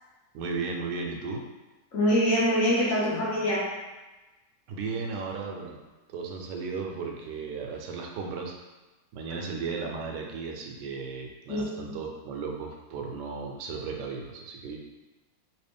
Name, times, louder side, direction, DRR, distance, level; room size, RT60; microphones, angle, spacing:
voice 1, 0.3-1.5 4.7-5.8 6.1-8.5 9.1-14.8, right 4 dB, 80° right, 1 dB, 1.2 m, -35 dB
voice 2, 1.9-3.7 11.5-12.0, equal, 60° left, -5 dB, 1.0 m, -25 dB
3.2 x 2.8 x 3.4 m, 1.1 s
omnidirectional pair, 1.9 m